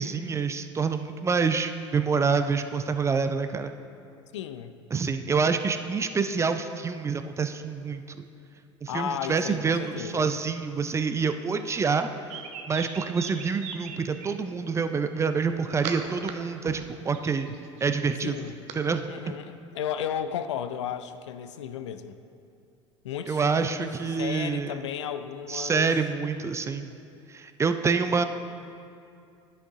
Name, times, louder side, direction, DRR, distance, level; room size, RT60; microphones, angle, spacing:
voice 1, 0.0-3.7 4.9-8.2 8.8-12.1 12.7-17.5 17.8-18.4 18.8-19.1 23.3-24.8 25.5-26.9 27.3-28.2, right 5 dB, 20° right, 9 dB, 0.4 m, -27 dB
voice 2, 4.3-4.8 8.9-10.3 18.2-18.6 19.1-22.2 23.0-25.9, left 9 dB, 75° left, 10 dB, 0.4 m, -34 dB
sound 1, 12.0-14.3 15.1-16.3 16.6-18.8, right 7 dB, 50° right, 0.7 m, -40 dB
10.0 x 5.6 x 3.6 m, 2.4 s
hypercardioid pair, 75°, 15 cm